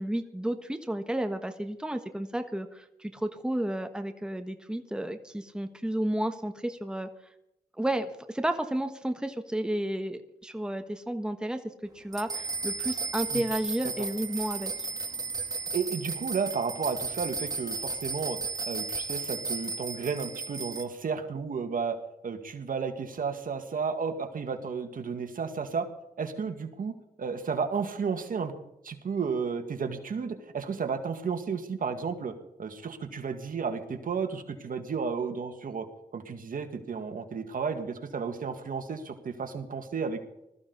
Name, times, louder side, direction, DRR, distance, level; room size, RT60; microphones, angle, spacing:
voice 1, 0.0-7.1 7.8-11.6 11.9-14.7, right 1 dB, 5° right, 7 dB, 1.3 m, -32 dB
sound 1, 12.1-20.8, right 3 dB, 25° right, 2.4 m, -34 dB
voice 2, 15.7-18.4 18.7-22.0 22.2-25.9 26.2-28.5 28.8-32.3 32.6-35.9 36.1-40.2, right 5 dB, 65° right, 7 dB, 2.0 m, -32 dB
20.0 x 14.0 x 4.0 m, 0.85 s
cardioid pair, 80°, 15 cm